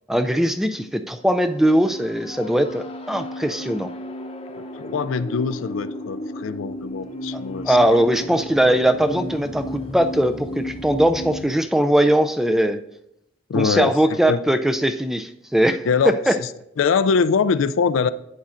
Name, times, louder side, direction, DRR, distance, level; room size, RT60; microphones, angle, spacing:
voice 1, 0.1-3.9 7.3-12.8 13.5-15.8 16.3-16.4, right 1 dB, ahead, 0.3 m, -20 dB
sound 1, 1.2-11.5, left 1 dB, 30° left, 0.8 m, -34 dB
voice 2, 4.5-7.8 13.5-14.0 14.3-14.4 15.8-16.5 16.8-18.1, left 5 dB, 75° left, 0.4 m, -22 dB
11.5 x 8.3 x 2.5 m
head